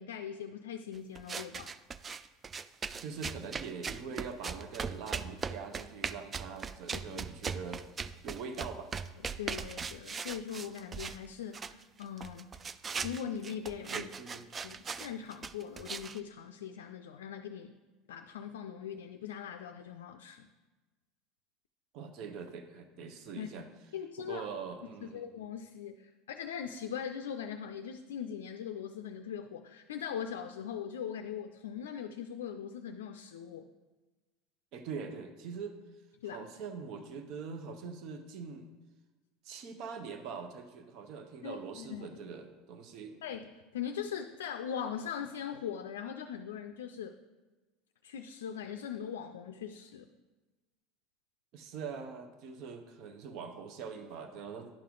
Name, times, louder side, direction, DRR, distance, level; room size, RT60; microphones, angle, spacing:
voice 1, 0.0-1.7 6.9-7.2 9.4-12.5 13.0-14.1 14.6-17.7 18.1-20.5 23.3-23.5 23.9-24.5 25.0-33.7 36.2-36.5 41.4-42.2 43.2-47.2 48.0-50.1, left 8 dB, 80° left, 6 dB, 0.4 m, -41 dB
sound 1, 1.2-11.3 11.5-16.2, right 5 dB, 30° right, 0.3 m, -39 dB
voice 2, 3.0-7.8 8.2-8.9 13.9-14.5 21.9-23.7 24.2-25.3 34.7-35.7 36.3-38.7 39.4-43.2 51.5-54.7, right 5 dB, 60° right, 7 dB, 0.9 m, -43 dB
10.5 x 5.7 x 3.8 m, 1.2 s
hypercardioid pair, 80°, 0 cm